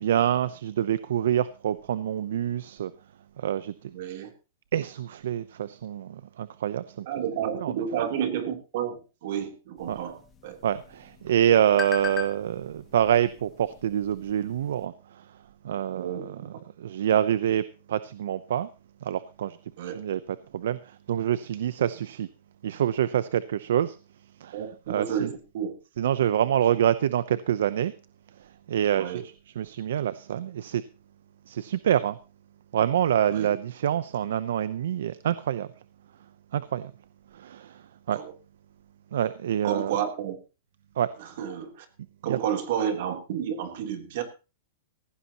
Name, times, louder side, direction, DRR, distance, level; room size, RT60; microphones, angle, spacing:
voice 1, 0.0-2.9 3.4-3.7 4.7-7.1 7.5-7.8 9.9-10.0 10.6-15.2 15.6-16.4 16.8-17.6 17.9-18.7 19.0-19.6 19.8-20.2 20.5-22.3 22.6-24.0 24.4-24.6 24.9-25.3 26.0-27.9 28.7-30.8 31.5-32.2 32.7-35.7 36.5-36.9 37.3-38.2 39.1-39.9 41.0-41.1 42.2-42.4, right 10 dB, 75° right, 15 dB, 0.7 m, -26 dB
voice 2, 3.9-4.3 7.1-10.6 15.9-16.5 19.8-19.9 24.5-25.8 28.9-29.2 33.3-33.5 38.1-38.3 39.6-40.3 41.2-41.8 42.2-44.2, right 9 dB, 60° right, 5 dB, 3.3 m, -31 dB
sound 1, 9.8-14.8, left 7 dB, 20° left, 2.0 m, -41 dB
17.5 x 15.5 x 3.0 m, 0.32 s
hypercardioid pair, 145°, 0 cm